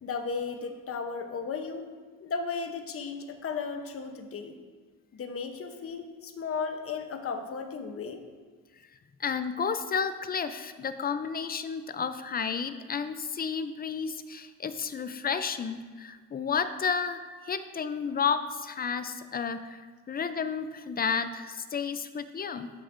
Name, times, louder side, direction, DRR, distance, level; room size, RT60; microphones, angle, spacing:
voice 1, 0.0-1.8 2.2-4.6 5.1-8.2, left 5 dB, 50° left, 6 dB, 0.9 m, -35 dB
voice 2, 9.2-22.7, left 6 dB, 30° left, 11 dB, 0.5 m, -32 dB
13.0 x 6.0 x 2.6 m, 1.5 s
cardioid pair, 90°, 30 cm